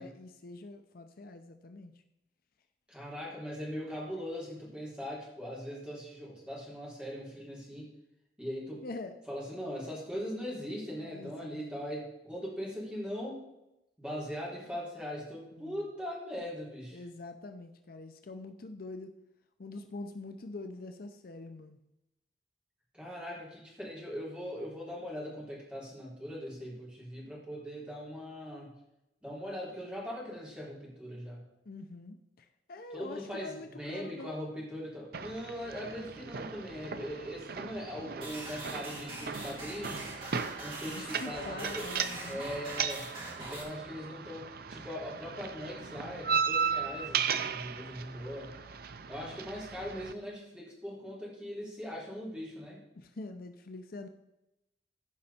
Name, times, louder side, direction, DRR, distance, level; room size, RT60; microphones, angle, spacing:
voice 1, 0.0-1.9 8.8-9.2 11.0-11.6 15.6-15.9 16.9-19.2 19.6-21.8 31.7-34.4 40.9-42.4 53.0-54.1, left 2 dB, 55° left, 7 dB, 0.6 m, -45 dB
voice 2, 2.9-7.9 8.4-8.9 9.3-13.4 14.0-17.0 22.9-28.7 29.2-31.4 32.9-40.0 40.6-41.9 42.2-43.1 43.4-48.5 49.1-52.8, equal, 5° right, -5 dB, 3.6 m, -40 dB
sound 1, 35.1-50.1, right 6 dB, 60° right, 0.6 m, -37 dB
sound 2, 38.2-43.6, right 2 dB, 30° right, 3.4 m, -43 dB
15.5 x 5.4 x 4.3 m, 0.90 s
head